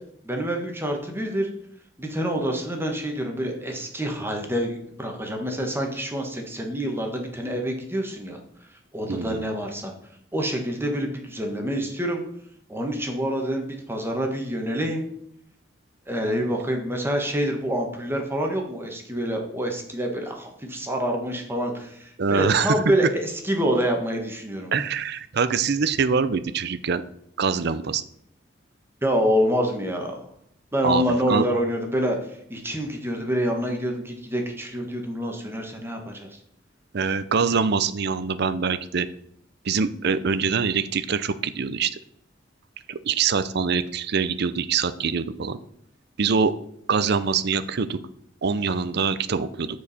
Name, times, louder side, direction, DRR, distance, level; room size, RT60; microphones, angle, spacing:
voice 1, 0.2-1.5 2.0-8.4 8.9-9.9 10.3-12.2 12.7-15.1 16.1-24.7 29.0-30.3 30.7-36.3, equal, 15° right, 2 dB, 1.4 m, -27 dB
voice 2, 9.1-9.5 22.2-22.7 24.7-27.0 27.4-28.0 30.8-31.4 36.9-39.1 39.6-41.9 42.9-45.6 46.2-46.5 46.9-48.0 48.4-49.7, right 5 dB, 60° right, 14 dB, 0.6 m, -24 dB
13.5 x 4.7 x 4.2 m, 0.71 s
head